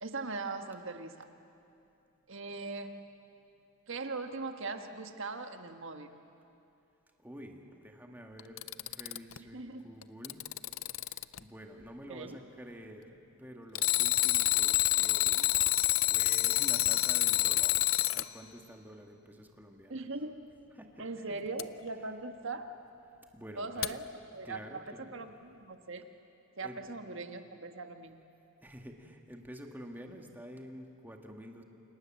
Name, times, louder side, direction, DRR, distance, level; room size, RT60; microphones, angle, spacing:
voice 1, 0.0-1.3 2.3-2.9 3.9-6.1 9.5-9.8 12.1-12.4 19.9-20.4 21.0-22.7 23.6-24.0 24.3-26.1 26.6-28.2, right 3 dB, 60° right, 6 dB, 1.6 m, -40 dB
voice 2, 7.2-10.5 11.0-15.5 16.1-20.0 20.7-21.4 23.3-24.0 24.4-25.2 26.6-26.8 28.6-31.6, equal, 10° right, 2 dB, 2.0 m, -49 dB
Alarm, 8.4-9.4 10.0-11.4 13.7-18.3 21.6-21.7 23.8-23.9, left 16 dB, 65° left, 0.6 m, -28 dB
29.0 x 27.0 x 7.6 m, 2.7 s
head